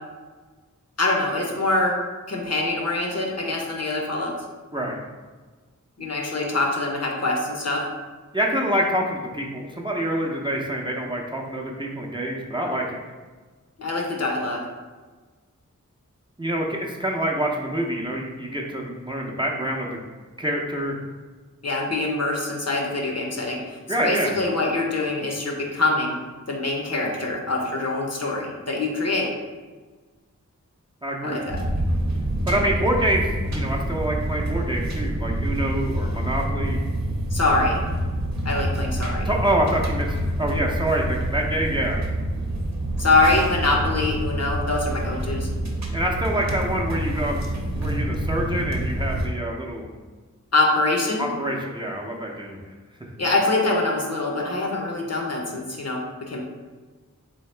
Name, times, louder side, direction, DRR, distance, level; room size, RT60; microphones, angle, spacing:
voice 1, 1.0-1.9 2.3-4.3 6.0-7.8 13.8-14.6 21.6-26.2 26.5-29.3 31.2-31.6 37.3-37.8 38.4-39.3 43.0-45.5 50.5-51.2 53.2-56.0 56.3-56.4, left 2 dB, 55° left, 0 dB, 0.7 m, -24 dB
voice 2, 8.3-13.0 16.4-20.0 20.4-21.0 23.9-24.3 31.0-31.4 32.5-36.8 39.2-42.0 45.9-47.4 47.7-49.9 51.2-52.6, right 1 dB, 15° right, -2 dB, 0.5 m, -26 dB
sound 1, 31.5-49.3, right 1 dB, 60° right, 0.7 m, -27 dB
3.5 x 2.8 x 3.2 m, 1.4 s
wide cardioid pair, 45°, 32 cm